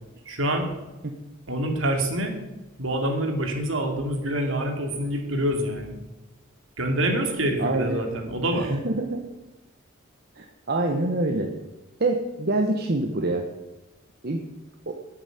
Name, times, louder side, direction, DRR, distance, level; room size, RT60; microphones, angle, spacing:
voice 1, 0.3-0.7 1.5-2.4 2.8-6.0 6.8-8.7, right 1 dB, 70° right, 4 dB, 2.6 m, -26 dB
voice 2, 7.6-8.0 8.6-9.3 10.4-11.6 12.0-13.4 14.2-14.5, right 2 dB, 50° right, 4 dB, 1.1 m, -25 dB
9.9 x 8.8 x 9.3 m, 1.1 s
head